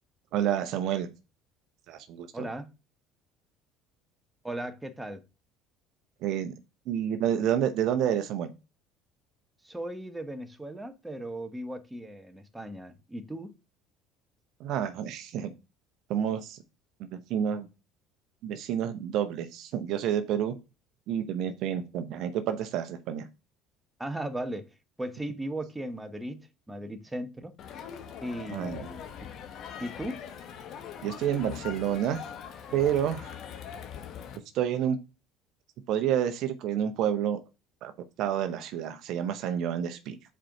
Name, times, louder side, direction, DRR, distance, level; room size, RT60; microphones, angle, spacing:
voice 1, 0.3-1.1 1.9-2.5 6.2-6.5 6.9-8.5 14.6-15.5 16.1-16.6 17.0-17.7 18.4-20.5 21.1-23.3 28.5-28.9 31.0-32.2 32.7-33.3 34.5-35.0 35.9-37.4 37.8-37.9 38.2-40.2, right 9 dB, 60° right, 0.7 m, -29 dB
voice 2, 2.3-2.7 4.4-5.2 9.6-13.5 24.0-24.7 25.0-27.5 28.2-29.3 29.8-30.2, right 1 dB, 10° right, 1.0 m, -37 dB
Crowd, 27.6-34.4, left 8 dB, 55° left, 1.1 m, -42 dB
4.9 x 4.6 x 5.8 m
hypercardioid pair, 70°, 0 cm